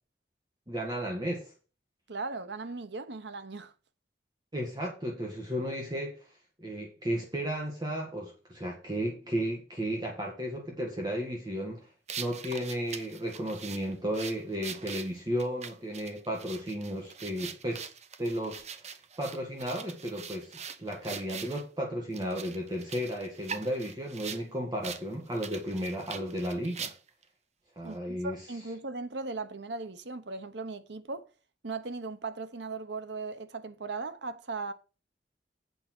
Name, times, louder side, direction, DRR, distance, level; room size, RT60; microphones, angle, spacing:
voice 1, 0.7-1.5 4.5-6.2 6.6-11.9 12.2-17.9 18.2-18.9 19.2-20.5 20.8-26.9 27.8-28.4, equal, 25° right, 1.8 m, -34 dB
voice 2, 2.1-3.7 27.8-31.2 31.6-34.7, right 3 dB, 80° right, 1.0 m, -38 dB
sound 1, 12.1-21.6 22.1-24.4 24.8-25.0 25.3-27.2, right 7 dB, 40° right, 0.8 m, -42 dB
8.4 x 5.7 x 6.0 m
head